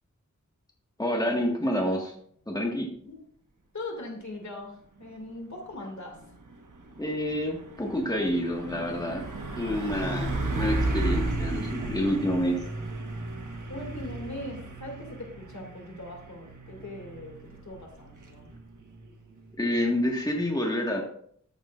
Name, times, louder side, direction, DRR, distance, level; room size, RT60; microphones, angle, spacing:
voice 1, 1.0-2.1 2.5-2.9 7.0-9.2 9.6-12.6 19.6-21.0, left 1 dB, 15° left, 0 dB, 1.6 m, -28 dB
voice 2, 3.7-4.7 5.0-6.1 13.7-17.3 17.7-18.5, left 2 dB, 65° left, 1 dB, 2.4 m, -40 dB
Truck, 6.2-20.5, right 2 dB, 90° right, 1.3 m, -34 dB
13.5 x 6.9 x 2.5 m, 0.63 s
wide cardioid pair, 75°, 30 cm